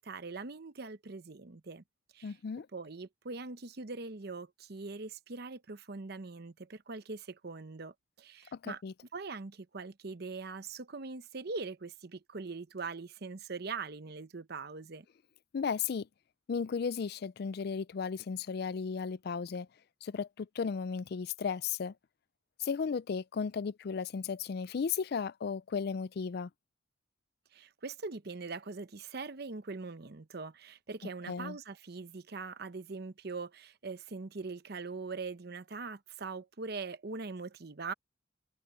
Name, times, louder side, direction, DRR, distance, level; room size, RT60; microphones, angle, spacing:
voice 1, 0.0-1.8 2.1-2.4 2.7-8.8 9.1-15.1 27.5-37.9, right 4 dB, 55° right, 0.9 m, -42 dB
voice 2, 2.2-2.7 8.5-8.9 15.5-16.1 16.5-19.7 20.0-21.9 22.6-26.5 31.3-31.6, left 6 dB, 55° left, 0.4 m, -35 dB
head